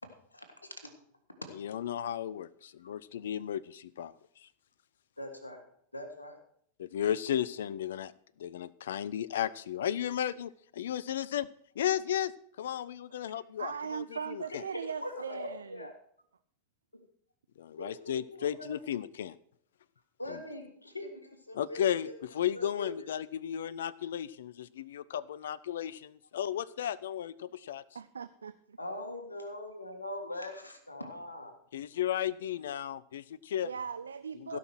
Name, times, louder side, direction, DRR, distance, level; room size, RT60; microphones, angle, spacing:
voice 1, 0.3-0.9 2.8-2.9 5.2-5.6 5.9-6.4 14.1-15.9 17.8-18.8 20.2-22.1 22.5-22.9 28.8-31.5 34.5-34.6, left 1 dB, 80° left, 6 dB, 1.7 m, -42 dB
voice 2, 1.5-4.1 4.4-4.5 6.8-8.1 8.4-11.5 11.8-12.3 12.6-14.6 17.6-19.3 20.3-20.4 21.5-27.8 31.7-33.7 34.4-34.6, left 10 dB, 60° left, 21 dB, 0.4 m, -34 dB
voice 3, 13.6-15.9 27.9-28.8 33.6-34.6, right 6 dB, 70° right, 12 dB, 0.4 m, -39 dB
16.0 x 5.8 x 6.2 m, 0.66 s
figure-of-eight pair, 90°, 0 cm